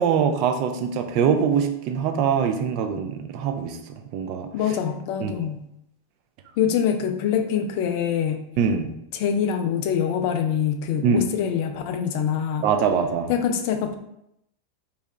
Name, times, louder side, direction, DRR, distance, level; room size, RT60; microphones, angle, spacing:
voice 1, 0.0-4.5 5.2-5.5 8.6-8.9 11.0-11.3 12.6-13.3, right 6 dB, 45° right, 5 dB, 0.3 m, -23 dB
voice 2, 4.5-5.6 6.6-8.5 9.1-12.6 13.3-13.9, left 8 dB, 45° left, 6 dB, 0.3 m, -24 dB
2.7 x 2.2 x 3.1 m, 0.78 s
figure-of-eight pair, 90°, 0 cm